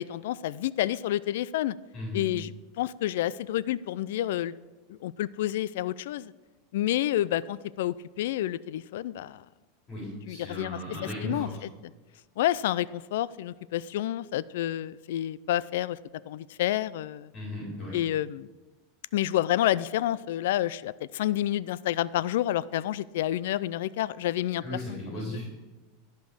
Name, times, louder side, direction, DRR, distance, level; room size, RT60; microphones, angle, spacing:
voice 1, 0.0-1.7 2.1-4.5 4.9-6.3 6.7-9.4 10.3-10.8 11.2-11.5 12.4-16.0 16.3-17.3 17.9-18.5 19.1-25.4, left 13 dB, 75° left, 19 dB, 0.3 m, -29 dB
voice 2, 1.9-2.3 9.9-11.7 17.3-18.0 24.6-25.5, left 1 dB, 30° left, -5 dB, 4.2 m, -36 dB
13.5 x 5.3 x 6.2 m, 1.2 s
supercardioid pair, 140°, 0 cm